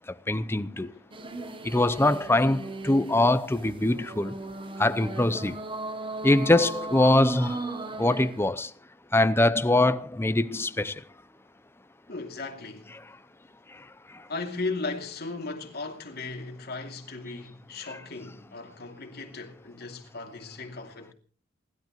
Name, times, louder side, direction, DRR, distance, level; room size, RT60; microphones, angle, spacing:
voice 1, 0.3-0.9 1.6-4.3 4.8-5.6 6.2-7.6 8.0-8.7 9.1-10.9, left 2 dB, 15° left, 0.6 m, -23 dB
sound 1, 1.1-8.5, right 2 dB, 25° right, 1.0 m, -37 dB
voice 2, 12.1-12.9 14.3-21.1, left 3 dB, 55° left, 2.6 m, -36 dB
28.5 x 12.0 x 3.1 m
head